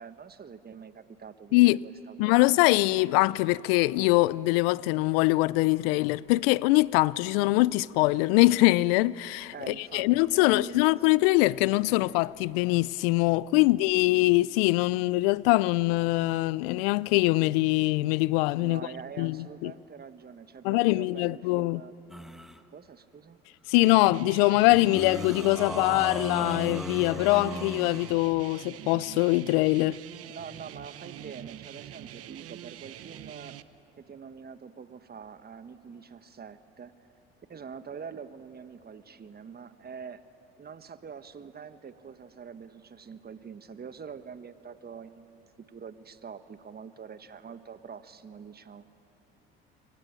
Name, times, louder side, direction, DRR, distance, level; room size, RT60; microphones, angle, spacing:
voice 1, 0.0-2.4 7.4-7.6 9.5-11.3 11.9-12.0 13.5-14.0 18.6-21.9 22.7-23.4 30.2-33.6 34.0-36.9 37.5-40.2 40.6-48.9, right 6 dB, 30° right, 1.5 m, -45 dB
voice 2, 1.5-1.8 2.2-18.8 19.2-19.4 19.6-19.7 20.6-21.8 23.7-30.0, left 20 dB, 70° left, 0.5 m, -23 dB
sound 1, 22.1-22.6 24.7-28.2, equal, ahead, 1.5 m, -36 dB
sound 2, 23.8-33.6, right 12 dB, 50° right, 1.1 m, -45 dB
27.0 x 24.0 x 9.0 m
hypercardioid pair, 65°, 30 cm